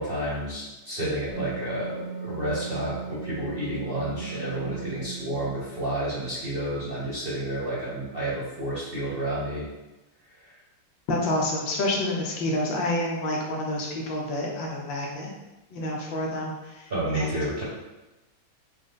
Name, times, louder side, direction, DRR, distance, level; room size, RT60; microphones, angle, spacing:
voice 1, 0.0-9.6 10.5-10.6 16.9-17.6, right 1 dB, 35° right, -8 dB, 1.0 m, -30 dB
Wind instrument woodwind instrument, 1.3-5.7, right 4 dB, 90° left, 2.2 m, -37 dB
voice 2, 11.1-15.3 15.7-16.8 17.1-17.3, left 1 dB, 70° left, -1 dB, 1.4 m, -28 dB
6.5 x 2.2 x 3.6 m, 1.0 s
omnidirectional pair, 2.2 m